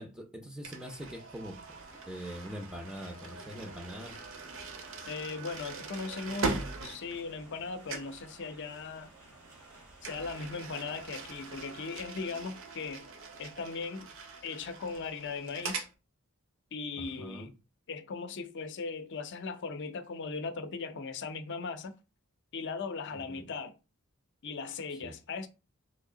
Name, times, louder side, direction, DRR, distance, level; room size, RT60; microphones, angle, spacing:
voice 1, 0.0-1.8 2.1-4.2 17.0-17.5 23.1-23.5 25.0-25.1, equal, 5° right, 0.4 m, -43 dB
sound 1, 0.6-7.6 7.9-8.2 10.0-15.9, right 3 dB, 60° right, 0.7 m, -41 dB
sound 2, 1.6-11.9, right 2 dB, 85° right, 1.5 m, -55 dB
voice 2, 5.0-9.1 10.0-13.1 13.4-14.1 14.4-15.8 16.7-17.5 17.9-21.9 22.5-23.8 24.4-25.5, left 4 dB, 55° left, 0.5 m, -38 dB
3.2 x 2.7 x 3.8 m
head